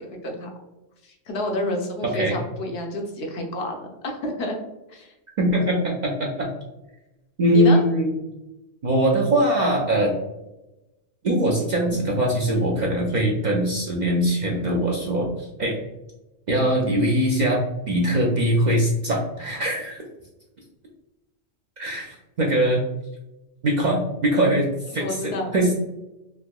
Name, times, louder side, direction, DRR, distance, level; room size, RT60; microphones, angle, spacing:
voice 1, 1.0-3.8 4.0-4.6 4.9-5.1 7.5-7.8 16.5-16.7 24.9-25.5, left 1 dB, 65° left, 1 dB, 0.9 m, -29 dB
voice 2, 5.4-6.5 7.4-8.1 8.8-10.2 11.2-15.8 16.5-20.0 21.8-22.9 23.6-25.7, right 1 dB, 55° right, -2 dB, 0.5 m, -22 dB
3.5 x 2.8 x 2.2 m, 0.99 s
omnidirectional pair, 1.2 m